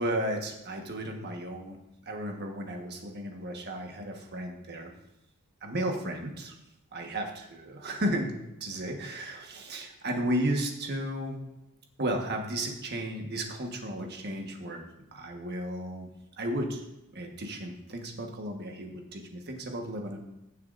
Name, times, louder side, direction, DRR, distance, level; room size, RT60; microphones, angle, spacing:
voice 1, 0.0-1.8 2.0-4.9 5.6-6.5 6.9-8.3 8.6-11.4 12.0-14.8 15.1-16.1 16.4-16.8 17.1-20.2, right 1 dB, 50° right, 3 dB, 1.4 m, -34 dB
15.5 x 7.3 x 2.6 m, 0.89 s
head